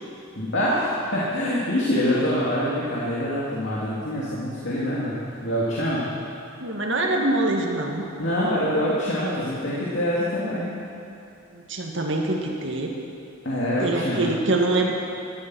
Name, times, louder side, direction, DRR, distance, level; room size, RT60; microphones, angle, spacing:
voice 1, 0.4-6.1 8.2-10.7 13.4-14.3, equal, 60° left, -7 dB, 2.5 m, -25 dB
voice 2, 6.6-8.0 11.5-12.9 13.8-15.0, right 2 dB, 60° right, 1 dB, 2.0 m, -24 dB
17.5 x 13.0 x 6.3 m, 2.7 s
head